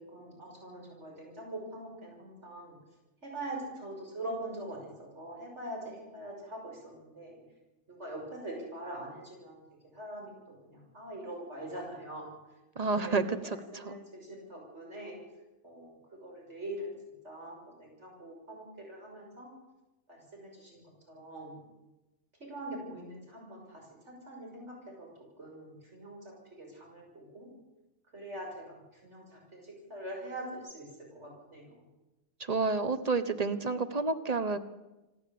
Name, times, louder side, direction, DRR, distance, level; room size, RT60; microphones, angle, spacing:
voice 1, 0.1-2.8 3.2-4.9 5.1-7.4 7.9-9.6 9.9-12.3 12.8-15.2 15.6-16.9 17.2-19.5 20.1-21.6 22.4-25.1 25.4-26.2 26.5-27.5 28.1-30.9 31.1-31.8, right 1 dB, 70° right, -1 dB, 6.6 m, -43 dB
voice 2, 12.8-14.0 32.4-34.6, right 4 dB, 35° right, 11 dB, 1.2 m, -30 dB
28.0 x 11.5 x 8.6 m, 1.0 s
omnidirectional pair, 1.3 m